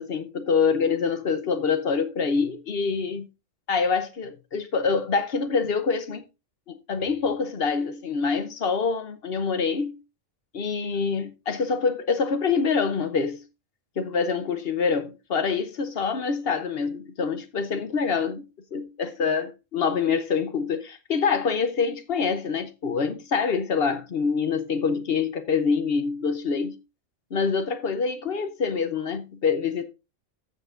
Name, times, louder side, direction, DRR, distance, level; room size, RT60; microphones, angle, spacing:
voice 1, 0.0-3.3 3.7-6.2 6.7-10.0 10.5-13.4 14.0-26.8 27.3-29.9, left 5 dB, 55° left, 1.0 m, -26 dB
15.0 x 6.5 x 2.5 m
omnidirectional pair, 1.3 m